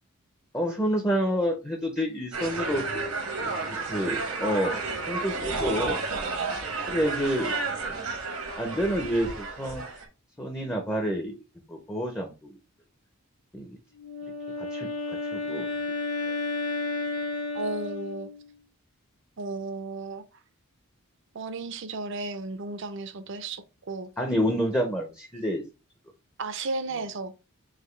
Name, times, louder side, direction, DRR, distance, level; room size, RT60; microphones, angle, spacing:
voice 1, 0.5-2.8 3.4-3.5 3.9-4.8 5.1-6.0 6.9-7.5 7.9-8.1 8.6-9.8 10.4-11.4 11.7-12.5 13.5-13.7 14.6-15.7 24.2-25.6, equal, 10° left, 0.5 m, -28 dB
sound 1, 2.3-10.1, right 3 dB, 85° right, 1.2 m, -32 dB
Wind instrument woodwind instrument, 14.0-18.5, left 3 dB, 80° left, 1.3 m, -32 dB
voice 2, 17.5-18.3 19.4-20.2 21.3-24.1 26.4-27.4, right 3 dB, 55° right, 0.5 m, -34 dB
4.9 x 2.6 x 3.1 m
head